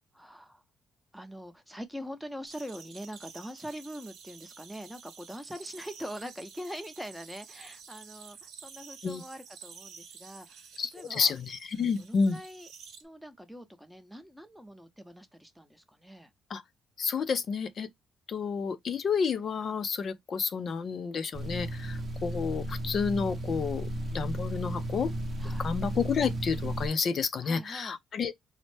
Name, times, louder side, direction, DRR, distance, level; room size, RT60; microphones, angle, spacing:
voice 1, 0.1-0.6 1.1-10.7 10.9-11.3 11.8-12.7 13.0-16.3 25.4-25.7 27.4-28.0, equal, ahead, 0.7 m, -43 dB
sound 1, 2.5-13.0, right 6 dB, 85° right, 0.8 m, -50 dB
voice 2, 10.8-12.4 16.5-16.6 17.0-17.9 18.3-25.1 25.6-28.3, left 5 dB, 55° left, 0.5 m, -30 dB
sound 2, 21.3-26.9, right 1 dB, 45° right, 0.7 m, -34 dB
4.1 x 2.1 x 3.1 m
cardioid pair, 90°, 0 cm